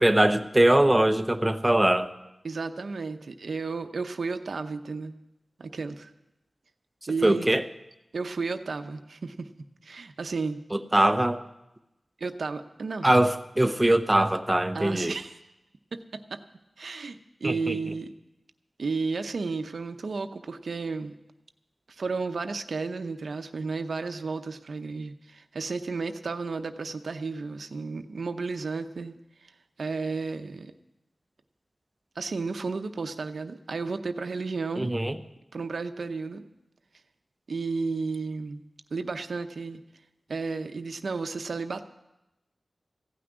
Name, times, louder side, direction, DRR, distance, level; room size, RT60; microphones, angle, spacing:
voice 1, 0.0-2.1 7.2-7.6 10.7-11.4 13.0-15.2 17.4-17.8 34.8-35.2, right 1 dB, 15° right, 10 dB, 0.7 m, -22 dB
voice 2, 2.4-5.1 5.6-6.1 7.1-7.5 8.1-9.5 9.8-10.6 12.2-13.1 14.7-15.4 15.9-16.4 16.8-18.1 18.8-21.1 22.0-29.1 29.4-29.5 29.8-30.7 32.2-34.9 35.5-36.4 37.5-38.6 38.9-39.8 40.3-41.8, right 4 dB, 80° right, 8 dB, 0.7 m, -33 dB
16.0 x 6.1 x 9.5 m, 0.94 s
wide cardioid pair, 100°, 0 cm